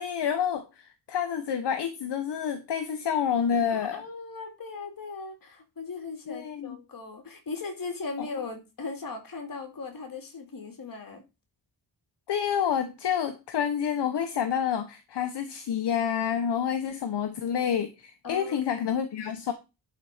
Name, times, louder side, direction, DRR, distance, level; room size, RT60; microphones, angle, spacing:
voice 1, 0.0-4.0 6.3-6.8 8.2-8.3 12.3-19.5, left 8 dB, 70° left, 8 dB, 1.1 m, -28 dB
voice 2, 3.7-11.2 18.2-18.6, left 4 dB, 50° left, 4 dB, 2.7 m, -38 dB
11.5 x 4.2 x 4.9 m, 0.26 s
wide cardioid pair, 145°, 43 cm